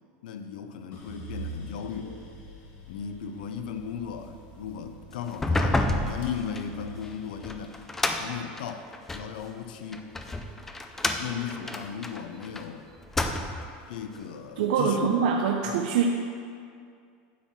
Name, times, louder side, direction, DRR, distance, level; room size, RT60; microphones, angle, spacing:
voice 1, 0.2-2.2 2.9-7.8 8.2-10.1 11.2-12.9 13.9-15.2 15.7-15.8, left 7 dB, 80° left, 7 dB, 0.6 m, -36 dB
sound 1, 0.9-11.1 11.6-12.3, right 2 dB, 35° left, 1.4 m, -46 dB
sound 2, 5.3-9.3 9.9-12.6 13.0-13.8, left 2 dB, 5° left, 0.4 m, -30 dB
voice 2, 14.6-16.1, right 7 dB, 70° right, 1 dB, 0.7 m, -24 dB
9.5 x 4.5 x 7.3 m, 2.3 s
supercardioid pair, 175°, 5 cm